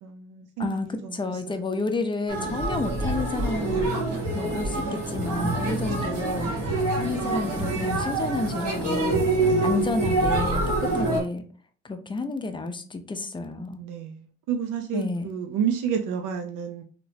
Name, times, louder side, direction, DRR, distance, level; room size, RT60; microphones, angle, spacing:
voice 1, 0.0-1.4 5.4-5.6 9.4-9.7 10.8-10.9 13.8-14.2 14.5-16.8, right 8 dB, 85° right, 0.5 m, -30 dB
voice 2, 0.6-3.9 4.3-6.5 7.0-9.2 9.6-11.5 11.8-13.8 14.9-15.3, left 3 dB, 15° left, 0.5 m, -30 dB
sound 1, 2.3-11.2, right 2 dB, 60° right, 1.6 m, -26 dB
3.0 x 2.9 x 2.7 m
cardioid pair, 90°, 30 cm